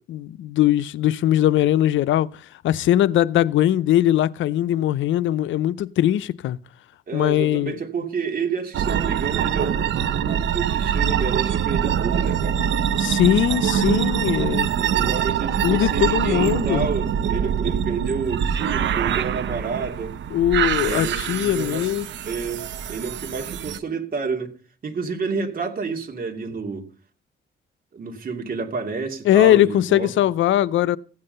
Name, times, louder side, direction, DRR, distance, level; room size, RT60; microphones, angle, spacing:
voice 1, 0.1-6.6 7.1-7.7 13.0-14.7 15.6-16.9 20.3-22.1 29.2-31.0, left 12 dB, 75° left, 0.6 m, -20 dB
voice 2, 7.1-12.6 14.7-20.2 20.8-21.9 22.2-24.5 24.8-26.9 27.9-30.1, right 5 dB, 45° right, 2.8 m, -29 dB
sound 1, 8.7-23.8, right 8 dB, 65° right, 0.9 m, -24 dB
15.5 x 9.7 x 5.5 m
cardioid pair, 90°, 20 cm